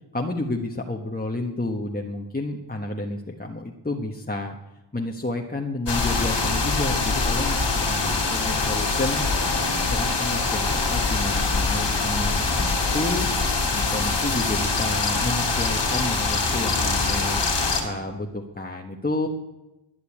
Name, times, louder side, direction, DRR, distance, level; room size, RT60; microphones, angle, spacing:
voice 1, 0.1-4.6 4.9-9.2 9.7-13.3 13.7-17.4 17.8-19.3, left 2 dB, 20° left, 1 dB, 1.3 m, -30 dB
sound 1, 5.9-17.8, left 3 dB, 80° left, 2.7 m, -24 dB
12.0 x 9.4 x 8.5 m, 0.99 s
cardioid pair, 50°, 43 cm